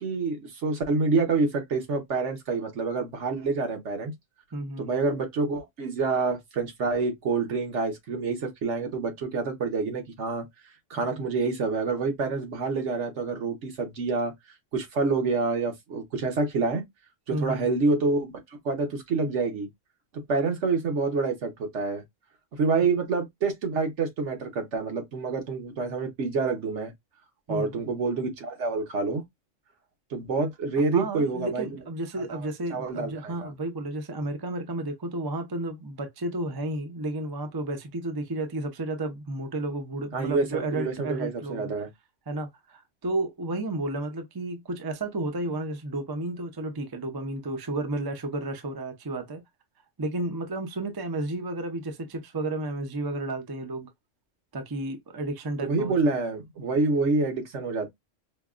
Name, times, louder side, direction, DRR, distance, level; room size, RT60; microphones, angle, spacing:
voice 1, 0.0-4.1 4.8-10.5 10.9-14.3 14.7-16.8 17.3-19.7 20.3-22.0 22.5-26.9 27.5-29.2 30.1-31.7 32.2-33.5 40.1-41.9 55.6-57.9, right 4 dB, 65° right, 1.3 m, -27 dB
voice 2, 4.5-5.0 11.0-11.1 17.3-17.9 27.5-27.8 30.9-41.7 42.3-49.4 50.0-53.9 54.5-56.1, right 2 dB, 25° right, 0.5 m, -32 dB
5.2 x 2.3 x 2.4 m
omnidirectional pair, 1.3 m